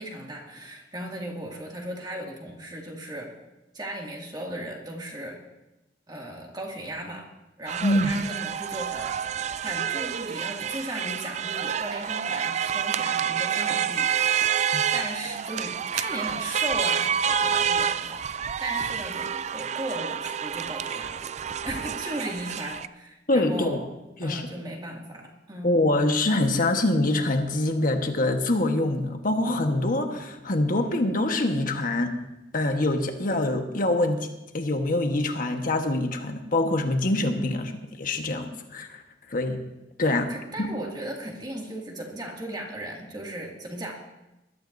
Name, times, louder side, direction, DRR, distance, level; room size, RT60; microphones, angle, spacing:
voice 1, 0.0-3.3 3.7-5.4 6.1-7.3 7.6-9.1 9.6-14.6 14.9-23.9 24.2-25.7 40.3-43.9, right 1 dB, 25° right, -1 dB, 2.3 m, -36 dB
sound 1, 7.7-22.9, right 8 dB, 40° right, 0.4 m, -28 dB
voice 2, 23.3-23.8 24.2-24.4 25.6-32.1 32.5-34.3 34.5-37.7 38.0-39.0 39.3-39.6 40.0-40.3 40.6-40.7, left 2 dB, 50° left, 5 dB, 1.3 m, -24 dB
21.0 x 12.5 x 2.7 m, 0.97 s
head